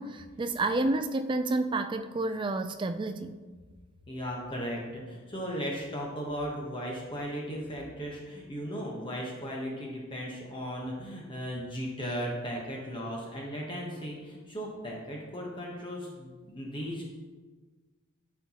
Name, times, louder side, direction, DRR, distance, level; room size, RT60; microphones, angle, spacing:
voice 1, 0.0-3.4, right 2 dB, 20° right, 9 dB, 0.3 m, -30 dB
voice 2, 4.1-17.1, equal, 25° left, -2 dB, 1.0 m, -36 dB
12.0 x 4.5 x 2.9 m, 1.4 s
head